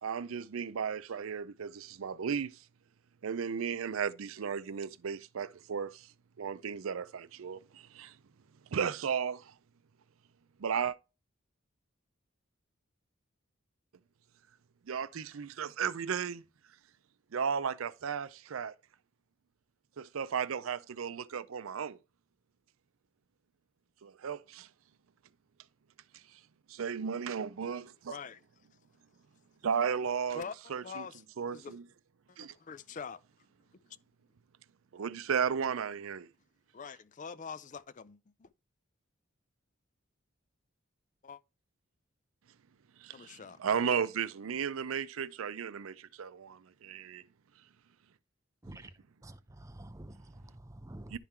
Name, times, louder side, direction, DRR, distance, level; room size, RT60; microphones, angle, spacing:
voice 1, 0.0-2.6 3.2-6.1 6.4-8.2 8.7-9.5 10.6-11.0 14.9-16.4 17.3-18.7 20.0-22.0 24.0-24.7 26.7-28.2 29.6-30.4 30.7-31.1 31.4-31.8 32.4-32.5 34.9-36.3 43.0-47.2 51.1-51.2, right 7 dB, 85° right, 0.5 m, -34 dB
voice 2, 28.1-28.4 30.3-30.5 30.8-31.2 31.5-31.7 32.3-33.2 36.7-38.5 41.2-41.4 43.1-43.6, left 6 dB, 40° left, 0.4 m, -44 dB
voice 3, 49.2-51.2, right 1 dB, 15° right, 0.5 m, -48 dB
10.5 x 3.7 x 4.4 m
head